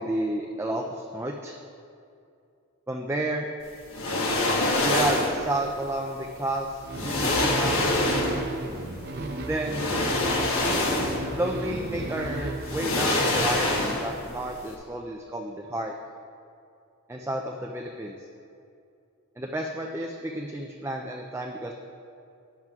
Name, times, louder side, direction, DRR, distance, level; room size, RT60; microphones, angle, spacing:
voice 1, 0.0-1.5 2.9-3.5 4.8-7.9 9.5-9.9 11.4-15.9 17.1-18.3 19.4-21.7, right 1 dB, 10° right, 0 dB, 0.4 m, -31 dB
sound 1, 3.9-5.4 6.5-6.6 6.9-8.5 9.6-11.4 11.7-11.8 12.6-14.2 14.5-14.7, left 2 dB, 65° left, 1.3 m, -25 dB
sound 2, 6.8-14.2, right 1 dB, 45° right, 0.6 m, -34 dB
13.0 x 9.2 x 2.4 m, 2.5 s
head